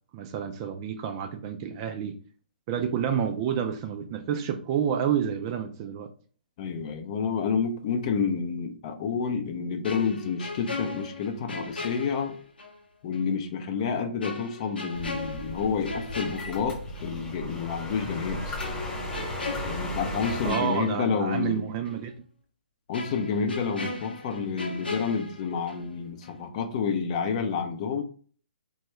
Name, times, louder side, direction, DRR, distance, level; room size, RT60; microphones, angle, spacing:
voice 1, 0.1-2.2 2.7-6.1 20.4-22.1, right 8 dB, 30° right, 0.4 m, -29 dB
voice 2, 6.6-12.4 13.0-18.6 19.6-21.6 22.9-28.0, left 5 dB, 40° left, 0.5 m, -29 dB
sound 1, 9.8-12.8 13.1-13.3 14.2-17.2 17.5-17.7 18.6-21.6 21.9-22.0 22.9-26.0 26.2-26.5, left 3 dB, 85° left, 0.7 m, -38 dB
sound 2, 14.9-20.5, left 1 dB, 15° left, 1.0 m, -35 dB
3.3 x 2.3 x 3.1 m
hypercardioid pair, 135°, 5 cm